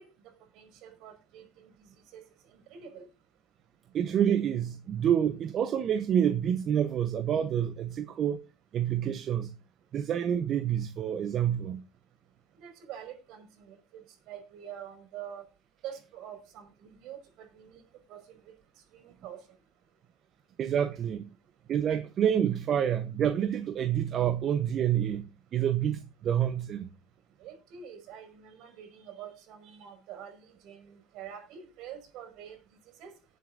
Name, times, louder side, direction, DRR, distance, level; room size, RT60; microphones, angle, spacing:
voice 1, 0.0-2.2 2.5-3.1 12.6-15.5 15.8-17.8 18.1-18.6 18.9-19.4 27.4-33.2, right 9 dB, 60° right, 5.3 m, -46 dB
voice 2, 3.9-8.4 8.7-9.5 9.9-11.8 20.6-21.3 21.7-26.9, right 9 dB, 40° right, 0.9 m, -28 dB
18.5 x 7.7 x 2.6 m
cardioid pair, 145°, 0 cm